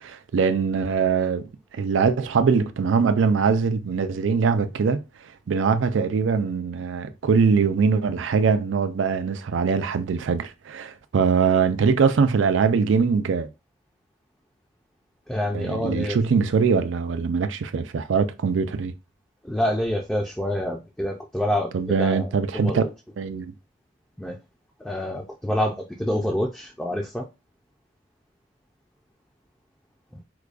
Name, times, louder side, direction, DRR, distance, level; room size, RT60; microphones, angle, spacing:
voice 1, 0.0-1.5 1.7-5.0 5.5-13.5 15.5-18.9 21.7-22.8 23.2-23.5, right 5 dB, 90° right, 0.4 m, -22 dB
voice 2, 15.3-16.2 19.4-22.9 24.2-24.4 24.8-27.3 30.1-30.2, left 1 dB, 5° left, 0.4 m, -27 dB
4.8 x 2.3 x 2.4 m
head